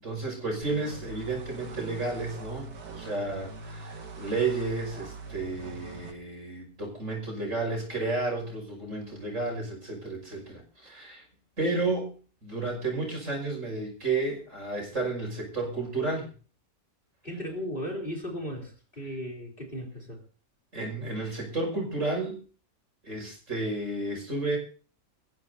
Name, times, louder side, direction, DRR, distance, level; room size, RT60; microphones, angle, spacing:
voice 1, 0.0-11.2 11.6-12.1 12.4-16.3 20.7-22.4 23.0-24.6, right 3 dB, 55° right, 1 dB, 6.3 m, -32 dB
sound 1, 0.6-6.1, right 3 dB, 90° right, 2.4 m, -42 dB
voice 2, 17.2-20.2, equal, 35° left, 0 dB, 3.8 m, -36 dB
25.0 x 15.0 x 2.8 m, 0.39 s
omnidirectional pair, 1.6 m